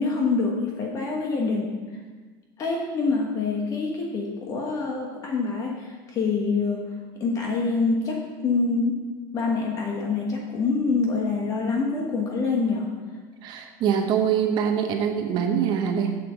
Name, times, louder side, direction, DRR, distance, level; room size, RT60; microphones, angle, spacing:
voice 1, 0.0-2.0 2.6-6.9 7.2-9.0 9.3-12.9, left 4 dB, 30° left, 0 dB, 1.3 m, -26 dB
voice 2, 13.4-16.2, right 8 dB, 40° right, 4 dB, 0.9 m, -24 dB
8.3 x 7.9 x 6.9 m, 1.4 s
cardioid pair, 160°, 11 cm